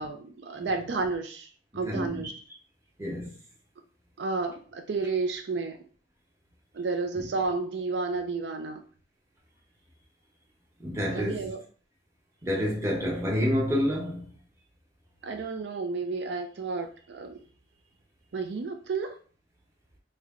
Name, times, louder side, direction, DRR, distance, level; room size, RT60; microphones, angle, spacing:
voice 1, 0.0-1.5 1.7-2.3 4.2-5.8 6.7-8.9 11.1-11.6 15.2-17.4 18.3-19.2, right 4 dB, 75° right, 0.4 m, -31 dB
voice 2, 1.8-2.3 3.0-3.3 7.1-7.3 10.8-11.5 12.4-14.3, equal, 15° right, 1.0 m, -28 dB
3.1 x 2.2 x 3.6 m
head